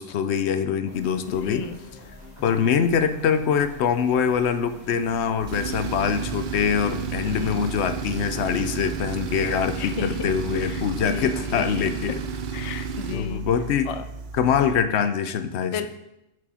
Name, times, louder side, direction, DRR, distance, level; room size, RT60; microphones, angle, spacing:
voice 1, 0.0-1.6 2.4-12.2 13.1-13.9 14.3-15.9, left 7 dB, 80° left, 10 dB, 0.9 m, -24 dB
sound 1, 0.9-11.4, left 1 dB, 25° left, 3.1 m, -45 dB
voice 2, 1.4-1.8 7.2-7.6 9.7-12.2 12.5-13.5 13.9-14.0 15.7-15.9, left 6 dB, 50° left, 9 dB, 0.4 m, -34 dB
Tools, 5.4-14.9, right 6 dB, 55° right, 0.6 m, -32 dB
9.9 x 4.8 x 4.2 m, 0.89 s
omnidirectional pair, 1.1 m